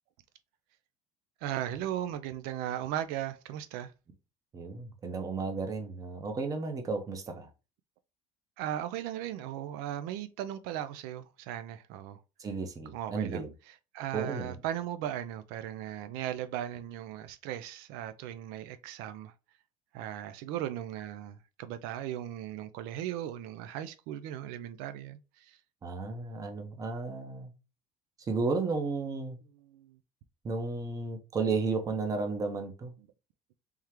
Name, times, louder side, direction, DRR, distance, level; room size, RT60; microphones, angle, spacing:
voice 1, 1.4-3.9 8.6-12.2 12.9-19.3 19.9-25.6 29.5-30.0 33.0-33.1, right 11 dB, 80° right, 0.4 m, -37 dB
voice 2, 4.5-7.5 12.4-13.5 14.1-14.5 25.8-27.5 28.3-29.4 30.4-32.9, right 4 dB, 20° right, 0.6 m, -33 dB
3.6 x 3.2 x 3.0 m
cardioid pair, 160°, 15 cm